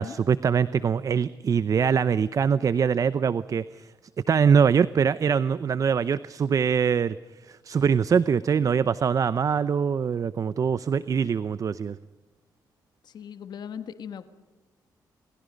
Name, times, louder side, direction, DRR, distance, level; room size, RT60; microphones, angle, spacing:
voice 1, 0.0-3.9 4.3-7.2 7.4-12.0, right 6 dB, 45° right, 16 dB, 0.7 m, -23 dB
voice 2, 13.0-14.2, left 8 dB, 65° left, 10 dB, 1.5 m, -38 dB
28.0 x 27.5 x 5.3 m, 1.1 s
cardioid pair, 100°, 8 cm